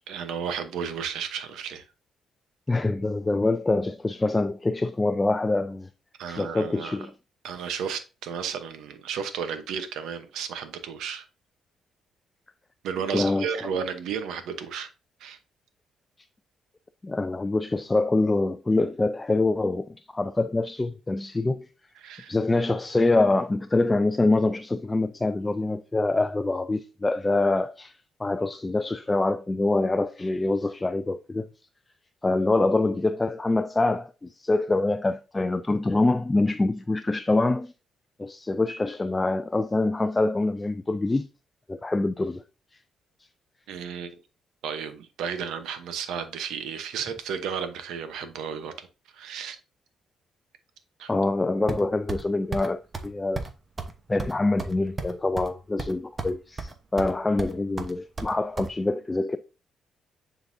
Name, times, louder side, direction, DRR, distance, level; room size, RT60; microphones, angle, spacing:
voice 1, 0.1-1.9 6.2-7.0 7.4-11.3 12.8-14.9 15.2-15.4 22.0-22.3 43.7-44.2 44.6-48.9 49.1-49.6 51.0-51.1, right 7 dB, 85° right, 0.8 m, -33 dB
voice 2, 2.7-5.9 6.3-7.1 13.1-13.5 17.0-21.7 22.3-27.9 28.2-31.5 32.2-37.7 38.2-41.3 41.7-42.4 51.1-53.5 54.1-59.4, left 2 dB, 20° left, 0.4 m, -25 dB
sound 1, 51.7-52.2 52.5-52.7 52.9-53.1 53.4-53.5 53.8-53.9 54.2-55.5 55.8-56.3 56.6-57.1 57.4-58.7, right 3 dB, 30° right, 1.0 m, -33 dB
9.5 x 3.9 x 2.6 m
cardioid pair, 90°, 0 cm